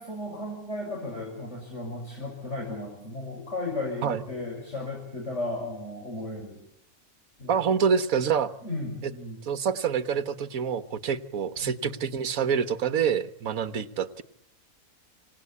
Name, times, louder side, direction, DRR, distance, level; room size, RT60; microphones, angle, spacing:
voice 1, 0.0-6.6 7.4-7.5 8.6-9.4 11.6-11.9, left 2 dB, 45° left, -1 dB, 6.3 m, -35 dB
voice 2, 7.5-8.5 9.0-9.1 9.4-14.2, right 7 dB, 60° right, 11 dB, 1.6 m, -26 dB
28.0 x 18.0 x 8.5 m, 0.79 s
omnidirectional pair, 1.7 m